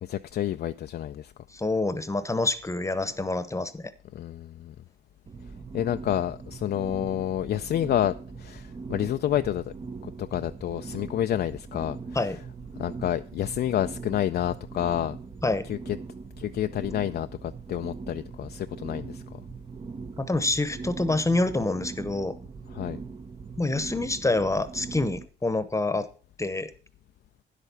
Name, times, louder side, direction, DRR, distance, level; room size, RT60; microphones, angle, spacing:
voice 1, 0.0-1.3 4.1-4.7 5.7-9.7 10.0-12.3 12.8-15.2 15.7-16.0 16.4-19.4 22.7-23.0, left 11 dB, 55° left, 0.4 m, -29 dB
voice 2, 1.5-3.9 12.1-12.4 15.4-15.7 20.2-22.4 23.6-26.1 26.4-26.7, left 2 dB, 15° left, 0.9 m, -27 dB
sound 1, 5.3-25.3, right 4 dB, 25° right, 0.6 m, -41 dB
10.0 x 8.2 x 5.6 m
cardioid pair, 90°, 20 cm